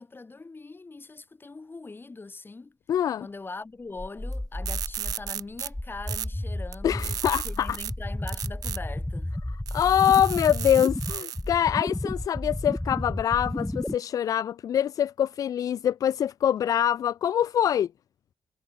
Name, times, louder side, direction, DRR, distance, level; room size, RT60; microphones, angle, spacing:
voice 1, 0.0-2.8 3.2-7.2 7.4-9.4, left 3 dB, 35° left, 4.2 m, -42 dB
voice 2, 2.9-3.3 6.8-7.8 9.7-17.9, left 10 dB, 75° left, 0.4 m, -24 dB
sound 1, 4.0-14.0, left 1 dB, 10° left, 1.2 m, -33 dB
sound 2, 4.3-4.4 4.7-5.7 6.1-6.3 6.7-7.9 8.3-8.8 9.7-11.4, right 11 dB, 85° right, 2.4 m, -35 dB
supercardioid pair, 50°, 6 cm